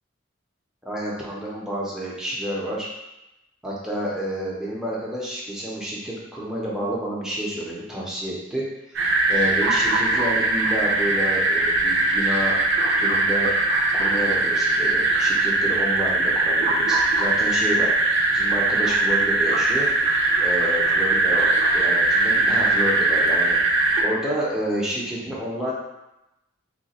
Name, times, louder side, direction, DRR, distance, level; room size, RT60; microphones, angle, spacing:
voice 1, 0.8-2.9 3.6-8.6 9.3-12.6 13.0-13.5 13.9-17.9 18.3-19.9 20.4-23.6 24.0-25.7, equal, 5° right, -6 dB, 0.6 m, -29 dB
sound 1, 8.9-24.0, right 2 dB, 65° right, 0.5 m, -21 dB
2.8 x 2.2 x 4.1 m, 0.95 s
head